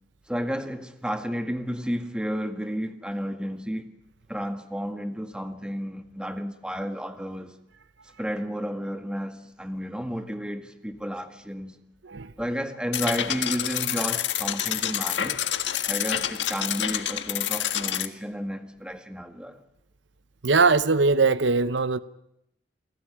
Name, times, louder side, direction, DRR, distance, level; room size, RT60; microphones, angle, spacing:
voice 1, 0.3-3.9 4.3-7.6 8.2-11.8 12.4-15.4 15.9-19.6, equal, 5° right, 1.9 m, -32 dB
sound 1, 12.9-18.1, left 10 dB, 80° left, 1.6 m, -28 dB
voice 2, 20.4-22.0, right 4 dB, 80° right, 0.9 m, -21 dB
28.0 x 17.5 x 10.0 m
head